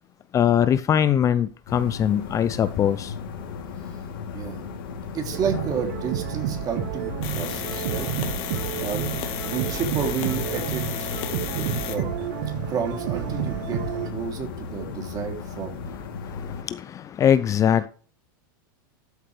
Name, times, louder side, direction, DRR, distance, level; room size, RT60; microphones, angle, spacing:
voice 1, 0.3-3.1 16.3-17.9, left 9 dB, 25° left, 0.6 m, -22 dB
sound 1, 1.7-16.6, left 5 dB, 75° left, 3.0 m, -36 dB
voice 2, 4.3-4.7 5.1-8.1 8.3-9.1 9.4-11.1 11.5-12.1 12.7-13.8 14.1-15.8, right 7 dB, 35° right, 3.1 m, -31 dB
sound 2, 5.3-14.1, right 12 dB, 60° right, 1.5 m, -30 dB
sound 3, 7.2-12.0, left 11 dB, 50° left, 2.0 m, -33 dB
13.0 x 8.3 x 3.4 m
hypercardioid pair, 120°, 12 cm